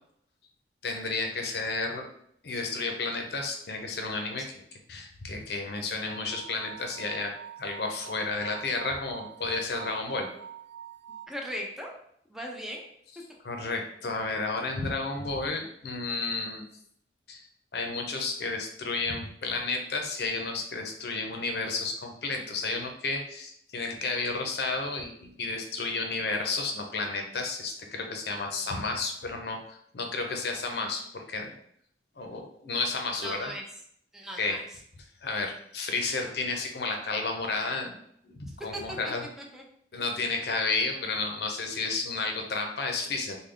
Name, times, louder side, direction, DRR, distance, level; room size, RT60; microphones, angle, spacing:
voice 1, 0.8-2.1 2.4-4.5 4.9-7.3 7.6-10.3 13.4-16.7 17.3-17.4 17.7-31.5 32.2-33.5 34.4-34.6 35.2-38.0 38.2-39.3 39.9-43.4, left 3 dB, 65° left, 3 dB, 0.6 m, -32 dB
sound 1, 6.1-11.3, right 9 dB, 70° right, 0.3 m, -45 dB
voice 2, 11.3-11.9 12.3-12.8 33.1-33.6 34.1-34.6 38.7-39.0 39.5-39.6, equal, ahead, 0 dB, 0.5 m, -37 dB
3.3 x 2.2 x 3.7 m, 0.68 s
head